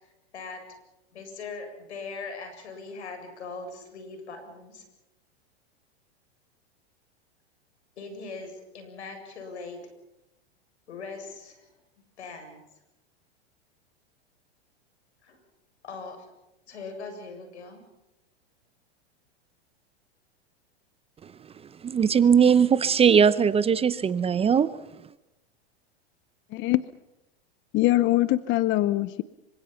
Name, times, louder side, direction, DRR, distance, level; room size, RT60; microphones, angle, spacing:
voice 1, 0.0-0.7 1.1-4.8 8.0-9.9 10.9-11.8 12.2-12.6 15.2-15.4 15.8-16.3 16.7-17.8, left 4 dB, 85° left, 7.8 m, -40 dB
voice 2, 21.8-24.7, right 7 dB, 20° right, 0.8 m, -20 dB
voice 3, 26.5-26.9 27.7-29.2, left 16 dB, 35° left, 0.8 m, -23 dB
26.5 x 24.5 x 5.8 m
hypercardioid pair, 115°, 33 cm